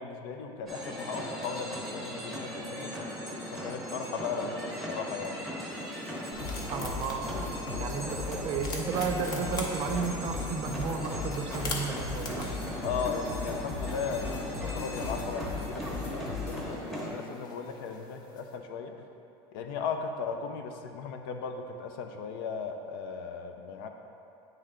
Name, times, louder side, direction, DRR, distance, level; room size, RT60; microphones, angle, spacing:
voice 1, 0.0-2.9 3.5-5.4 12.8-19.1 19.5-23.9, left 5 dB, 75° left, 5 dB, 0.6 m, -37 dB
sound 1, 0.7-17.1, equal, ahead, 0.9 m, -38 dB
sound 2, 5.7-18.6, left 3 dB, 35° left, 0.7 m, -45 dB
sound 3, 6.3-16.6, left 4 dB, 55° left, 0.9 m, -38 dB
voice 2, 6.7-7.3 7.8-12.5, right 6 dB, 40° right, 5 dB, 0.5 m, -33 dB
9.1 x 3.2 x 3.7 m, 2.7 s
cardioid pair, 165°, 12 cm